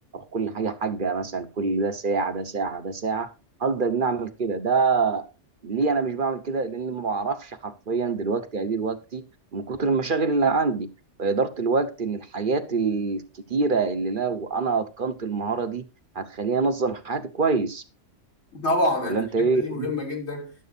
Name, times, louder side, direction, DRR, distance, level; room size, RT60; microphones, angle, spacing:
voice 1, 0.1-3.3 3.6-5.3 5.6-9.2 9.5-10.9 11.2-15.8 16.1-17.8 19.0-19.9, right 4 dB, 45° right, 1.1 m, -25 dB
voice 2, 18.5-20.5, left 1 dB, 60° left, 3.5 m, -27 dB
11.5 x 7.6 x 4.1 m
omnidirectional pair, 1.3 m